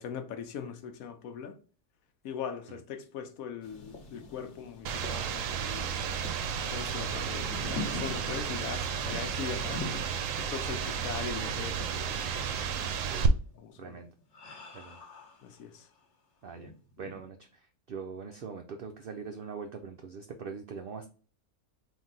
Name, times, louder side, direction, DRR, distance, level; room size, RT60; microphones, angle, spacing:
voice 1, 0.0-1.6 2.2-6.0 6.7-10.0 10.4-12.3 13.2-14.0 15.4-15.9, left 7 dB, 75° left, 1.1 m, -40 dB
sound 1, 3.6-16.0 16.5-17.3, left 2 dB, 55° left, 1.2 m, -45 dB
sound 2, 4.9-13.3, right 7 dB, 70° right, 0.9 m, -33 dB
voice 2, 13.8-14.1 14.7-15.0 16.4-16.7 17.0-17.6 17.9-21.1, right 5 dB, 85° right, 0.5 m, -42 dB
3.8 x 2.6 x 3.9 m
omnidirectional pair, 1.6 m